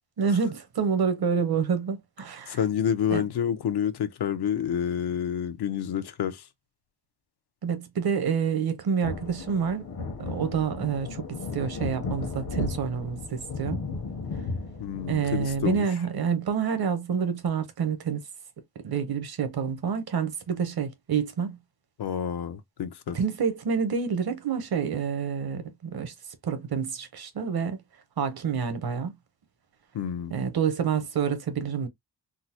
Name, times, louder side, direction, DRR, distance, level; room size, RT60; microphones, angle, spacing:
voice 1, 0.2-2.6 3.1-3.2 7.6-9.9 10.2-11.2 11.5-13.8 15.1-18.2 18.8-21.6 23.1-26.1 26.4-27.8 28.2-29.1 30.3-31.9, right 6 dB, 70° right, 0.9 m, -28 dB
voice 2, 2.5-6.4 14.8-15.8 22.0-23.2 29.9-30.3, left 9 dB, 85° left, 0.7 m, -28 dB
sound 1, 9.0-15.8, left 3 dB, 65° left, 1.0 m, -35 dB
3.7 x 2.0 x 2.8 m
wide cardioid pair, 115°, 39 cm